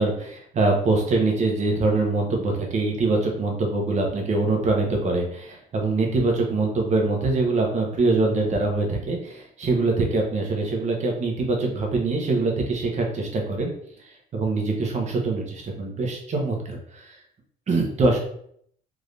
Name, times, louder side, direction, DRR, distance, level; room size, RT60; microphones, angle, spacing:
voice 1, 0.0-13.7 14.0-17.2 17.7-18.2, right 3 dB, 45° right, 1 dB, 1.0 m, -24 dB
3.6 x 2.6 x 3.3 m, 0.67 s
cardioid pair, 110°, 17 cm